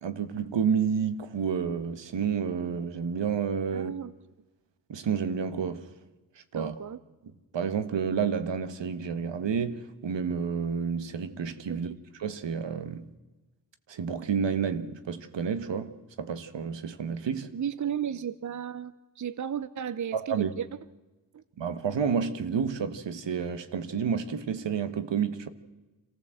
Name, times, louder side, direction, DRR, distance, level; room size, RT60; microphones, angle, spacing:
voice 1, 0.0-4.0 4.9-5.9 6.5-6.7 7.5-11.9 12.2-13.1 13.9-17.5 20.1-20.5 21.6-25.5, right 6 dB, 70° right, 1.5 m, -30 dB
voice 2, 3.7-4.1 6.5-7.0 11.7-12.0 17.5-20.7 21.3-21.4, right 8 dB, 40° right, 0.7 m, -34 dB
26.5 x 14.5 x 7.8 m
cardioid pair, 65°, 45 cm